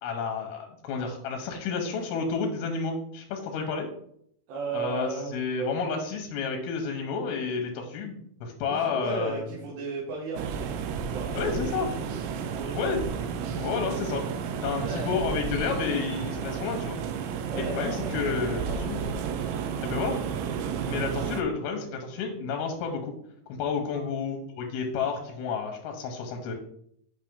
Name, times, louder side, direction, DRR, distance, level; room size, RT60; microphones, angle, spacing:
voice 1, 0.0-3.9 4.7-9.5 11.4-11.9 12.7-13.0 13.6-14.2 14.6-17.0 17.5-19.2 19.8-20.2 20.9-23.1 23.5-26.5, left 5 dB, 85° left, 3 dB, 2.9 m, -30 dB
voice 2, 4.5-5.8 8.8-10.8 11.0-13.0 14.8-15.1 17.5-18.8 19.0-19.2 23.8-24.0, right 4 dB, 70° right, -4 dB, 2.9 m, -36 dB
sound 1, 10.4-21.4, right 7 dB, 90° right, 2.6 m, -32 dB
8.0 x 5.6 x 3.7 m, 0.69 s
omnidirectional pair, 4.4 m